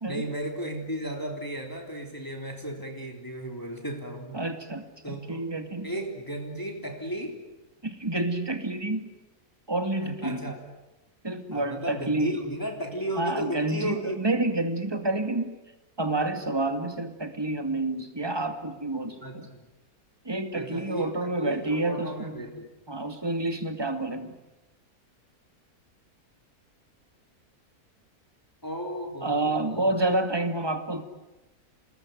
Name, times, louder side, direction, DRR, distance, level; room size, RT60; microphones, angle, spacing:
voice 1, 0.1-4.4 5.0-5.4 5.8-7.4 10.0-10.6 11.5-14.2 19.2-19.7 20.5-22.7 28.6-30.0, right 1 dB, 10° left, 2 dB, 3.5 m, -34 dB
voice 2, 4.3-5.9 7.8-9.1 9.7-10.4 11.2-12.4 13.2-15.6 16.0-19.5 20.2-22.5 22.9-24.3 29.2-31.0, right 2 dB, 15° right, 6 dB, 2.3 m, -29 dB
29.5 x 19.5 x 9.3 m, 1.0 s
omnidirectional pair, 1.6 m